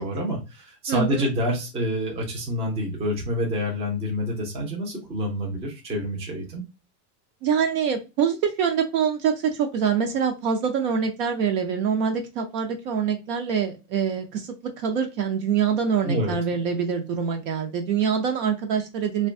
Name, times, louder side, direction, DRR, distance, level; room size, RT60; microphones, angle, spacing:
voice 1, 0.0-6.6 16.0-16.3, equal, 15° right, -1 dB, 0.5 m, -27 dB
voice 2, 0.9-1.2 7.4-19.3, right 7 dB, 60° right, 4 dB, 0.6 m, -25 dB
2.6 x 2.2 x 2.5 m, 0.27 s
supercardioid pair, 150°, 47 cm